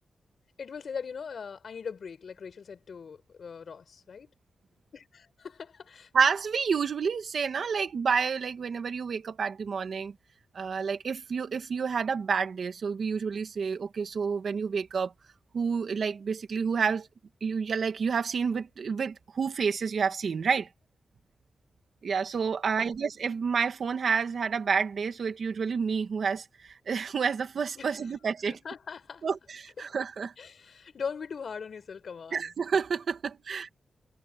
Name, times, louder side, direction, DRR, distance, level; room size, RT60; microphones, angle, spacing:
voice 1, 0.6-4.3 5.1-6.1 27.8-28.0 28.4-29.3 29.8-29.9 30.4-32.5, left 6 dB, 55° left, 5.1 m, -40 dB
voice 2, 6.1-10.1 10.5-15.1 15.5-17.1 17.4-20.7 22.0-28.5 29.2-30.3 32.3-33.7, right 6 dB, 55° right, 2.1 m, -29 dB
wide cardioid pair, 175°, 0 cm